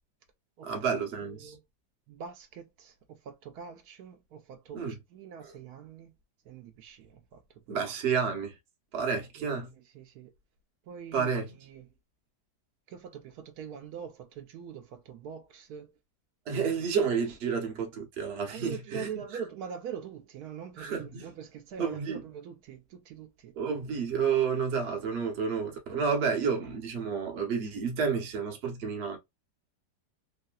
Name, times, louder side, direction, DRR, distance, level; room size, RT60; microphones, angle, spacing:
voice 1, 0.6-1.6 4.7-5.0 7.7-8.5 8.9-9.7 11.1-11.5 16.5-19.1 20.8-21.3 21.8-22.2 23.6-29.2, right 6 dB, 50° right, 0.9 m, -30 dB
voice 2, 1.2-1.6 2.1-6.1 6.4-7.4 7.7-7.8 9.4-10.3 10.9-11.3 11.6-11.9 12.9-15.9 18.5-23.6, right 7 dB, 70° right, 1.0 m, -43 dB
3.1 x 2.7 x 2.3 m
omnidirectional pair, 1.8 m